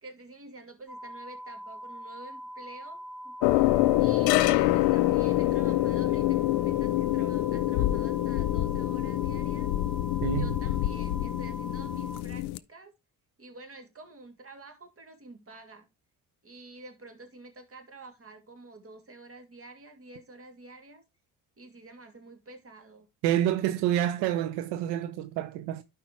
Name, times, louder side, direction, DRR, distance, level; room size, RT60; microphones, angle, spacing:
voice 1, 0.0-9.7 10.3-12.9 13.4-15.9 16.4-21.0 21.6-23.1, right 2 dB, 35° right, 2.4 m, -49 dB
sound 1, 0.9-12.2, equal, ahead, 0.4 m, -43 dB
sound 2, 3.4-12.6, left 17 dB, 90° left, 0.5 m, -26 dB
voice 2, 10.2-10.5 23.2-25.8, right 12 dB, 85° right, 0.7 m, -28 dB
12.0 x 4.8 x 3.0 m
supercardioid pair, 70°, 38 cm